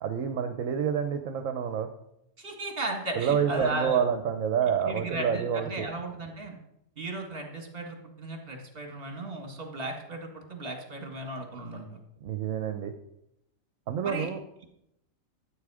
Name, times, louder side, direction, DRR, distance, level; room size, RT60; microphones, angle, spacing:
voice 1, 0.0-1.9 3.1-5.9 12.2-12.9 13.9-14.4, right 8 dB, 70° right, 7 dB, 1.2 m, -28 dB
voice 2, 2.4-4.0 4.8-6.6 7.0-12.0 14.0-14.3, right 2 dB, 45° right, 2 dB, 2.2 m, -36 dB
13.5 x 8.2 x 4.9 m, 0.82 s
omnidirectional pair, 1.4 m